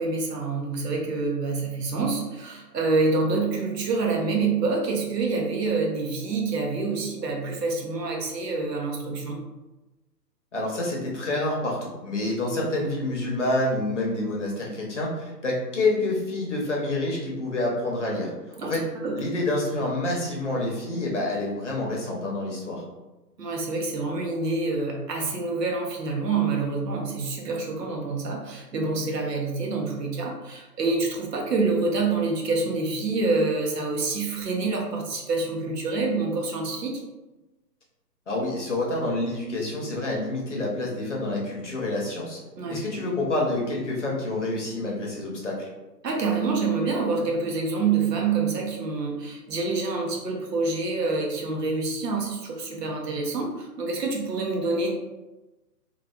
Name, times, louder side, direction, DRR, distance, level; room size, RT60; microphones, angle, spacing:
voice 1, 0.0-9.4 18.6-18.7 19.0-19.2 23.4-37.0 42.6-42.8 46.0-54.9, right 3 dB, 70° right, 0 dB, 0.9 m, -27 dB
voice 2, 10.5-18.8 19.2-22.8 38.3-42.4 42.7-45.7, left 2 dB, 45° left, -3 dB, 0.7 m, -28 dB
3.2 x 2.4 x 2.3 m, 1.1 s
hypercardioid pair, 170°, 50 cm